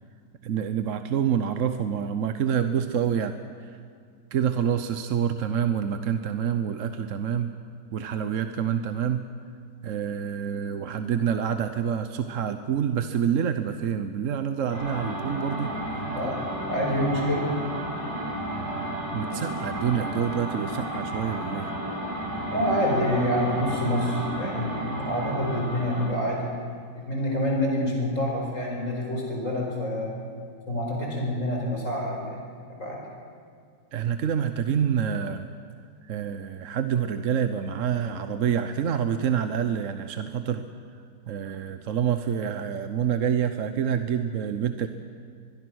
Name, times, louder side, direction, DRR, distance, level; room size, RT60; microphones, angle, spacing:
voice 1, 0.4-3.3 3.6-3.8 4.3-7.5 7.9-9.2 9.8-16.1 19.1-21.7 33.9-35.5 36.1-40.7 41.3-44.9, right 8 dB, 55° right, 9 dB, 1.0 m, -27 dB
sound 1, 14.7-26.2, right 1 dB, 15° right, 6.8 m, -32 dB
voice 2, 16.7-17.5 22.5-26.5 26.9-30.2 30.7-32.4 32.8-33.0, equal, 45° left, -1 dB, 5.3 m, -27 dB
24.0 x 22.0 x 6.4 m, 2.2 s
omnidirectional pair, 1.9 m